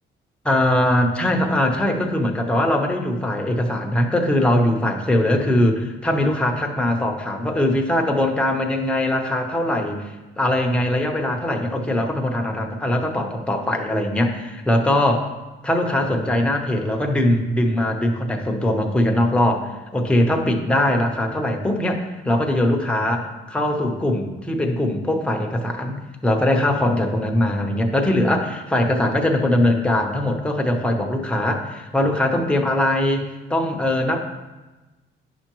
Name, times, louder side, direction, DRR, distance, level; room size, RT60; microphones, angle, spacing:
voice 1, 0.4-15.3 15.6-34.2, left 1 dB, 5° left, 1 dB, 0.8 m, -21 dB
9.5 x 5.7 x 3.0 m, 1.1 s
cardioid pair, 125°, 21 cm